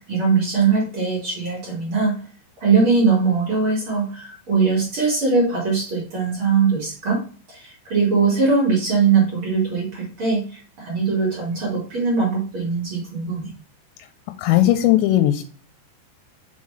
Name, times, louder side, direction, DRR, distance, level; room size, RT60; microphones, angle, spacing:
voice 1, 0.1-2.2 2.6-7.2 7.5-13.5, right 4 dB, 50° right, -3 dB, 1.7 m, -21 dB
voice 2, 14.4-15.4, left 13 dB, 85° left, 8 dB, 2.7 m, -17 dB
5.8 x 5.6 x 3.1 m, 0.39 s
omnidirectional pair, 5.3 m